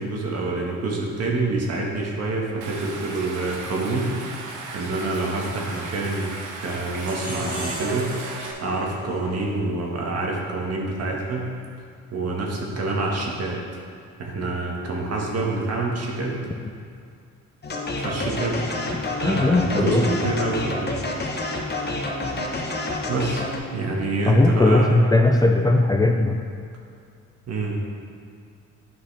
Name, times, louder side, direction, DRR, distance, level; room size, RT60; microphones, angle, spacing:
voice 1, 0.0-4.4 4.7-6.3 6.6-8.1 8.6-11.5 12.1-13.6 14.2-16.4 18.0-18.6 19.2-21.0 23.1-25.0 27.5-27.8, right 2 dB, 55° right, -2 dB, 1.5 m, -26 dB
Stream, 2.6-8.5, right 3 dB, 85° right, 1.0 m, -36 dB
sound 1, 7.0-10.2, right 1 dB, 30° right, 1.6 m, -35 dB
sound 2, 17.6-23.6, left 2 dB, 35° left, 1.1 m, -28 dB
voice 2, 18.9-20.2 24.3-26.4, left 2 dB, 15° left, 2 dB, 0.4 m, -19 dB
9.8 x 5.5 x 3.4 m, 2.4 s
cardioid pair, 90°, 30 cm